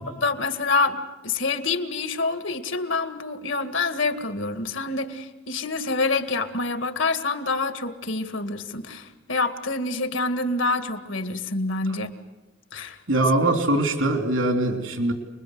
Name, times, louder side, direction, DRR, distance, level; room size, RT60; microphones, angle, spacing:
voice 1, 0.0-12.1 12.7-13.0, left 3 dB, 75° left, 8 dB, 2.1 m, -27 dB
voice 2, 13.1-15.1, right 2 dB, 85° right, 4 dB, 3.3 m, -22 dB
29.0 x 21.5 x 7.9 m, 1.1 s
head